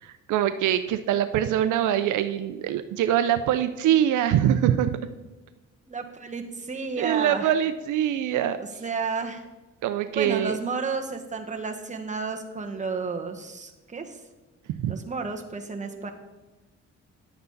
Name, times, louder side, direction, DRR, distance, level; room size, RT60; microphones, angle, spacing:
voice 1, 0.0-5.0 7.0-8.6 9.8-10.6 14.7-15.0, right 10 dB, 80° right, 11 dB, 0.6 m, -24 dB
voice 2, 5.9-7.5 8.6-9.4 10.1-14.2 14.9-16.1, right 4 dB, 25° right, 4 dB, 1.3 m, -32 dB
11.0 x 7.9 x 4.0 m, 1.1 s
cardioid pair, 90°, 30 cm